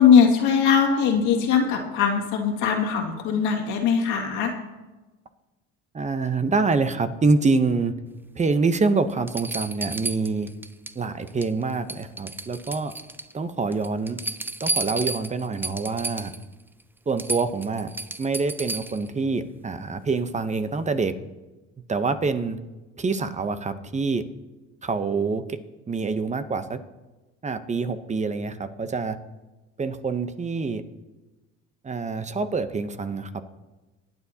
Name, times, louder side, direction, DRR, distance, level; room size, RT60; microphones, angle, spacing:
voice 1, 0.0-4.5, left 7 dB, 80° left, 0 dB, 2.2 m, -20 dB
voice 2, 5.9-8.0 8.4-10.5 10.9-12.9 13.3-14.2 14.6-16.3 17.1-17.9 18.2-21.2 21.9-22.6 23.0-24.2 24.8-25.6 25.9-26.8 27.4-29.2 29.8-30.8 31.8-33.4, right 4 dB, 25° right, 10 dB, 0.8 m, -26 dB
sound 1, 8.6-8.7 9.3-11.0 11.3-11.6 11.9-13.3 13.7-16.4 16.8-16.9 17.2-19.1 20.8-20.9, right 2 dB, 5° right, 0.4 m, -32 dB
20.0 x 9.6 x 2.8 m, 1.1 s
supercardioid pair, 90°, 30 cm